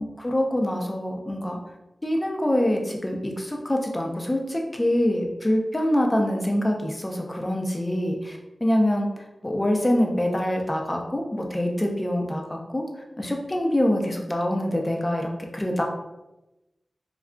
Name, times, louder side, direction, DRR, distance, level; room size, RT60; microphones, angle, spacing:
voice 1, 0.0-1.6 2.0-9.1 9.4-12.8 13.2-15.8, left 1 dB, 20° left, 1 dB, 0.5 m, -25 dB
3.6 x 2.3 x 2.2 m, 0.98 s
wide cardioid pair, 65°, 0 cm